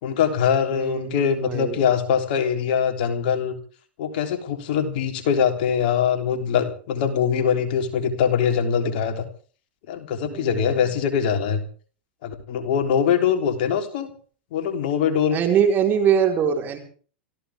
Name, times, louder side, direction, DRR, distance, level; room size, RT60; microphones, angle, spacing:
voice 1, 0.0-3.6 4.0-9.2 9.9-11.6 12.2-14.1 14.5-15.4, left 7 dB, 55° left, 5 dB, 3.5 m, -22 dB
voice 2, 0.7-1.9 10.2-10.8 15.3-16.8, right 8 dB, 35° right, 3 dB, 4.4 m, -23 dB
26.5 x 15.0 x 3.6 m, 0.43 s
hypercardioid pair, 100°, 6 cm